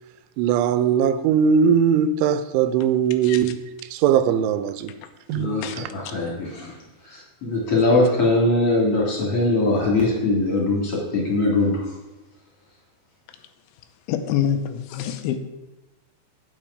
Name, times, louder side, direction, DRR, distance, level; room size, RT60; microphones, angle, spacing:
voice 1, 0.4-3.6 3.9-4.9 5.3-5.5 5.8-5.9, right 7 dB, 90° right, 3.1 m, -20 dB
voice 2, 5.3-6.7 7.0-11.9, left 2 dB, 35° left, 3.0 m, -21 dB
voice 3, 14.1-15.4, left 9 dB, 85° left, 3.1 m, -25 dB
9.0 x 8.9 x 4.9 m
omnidirectional pair, 5.4 m